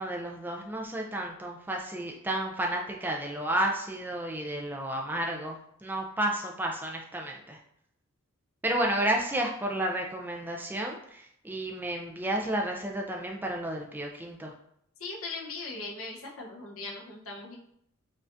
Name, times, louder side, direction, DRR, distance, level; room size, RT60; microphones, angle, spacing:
voice 1, 0.0-7.6 8.6-14.5, right 1 dB, 10° right, 0 dB, 0.3 m, -32 dB
voice 2, 15.0-17.6, left 3 dB, 75° left, -1 dB, 0.9 m, -39 dB
5.4 x 2.4 x 2.6 m, 0.71 s
head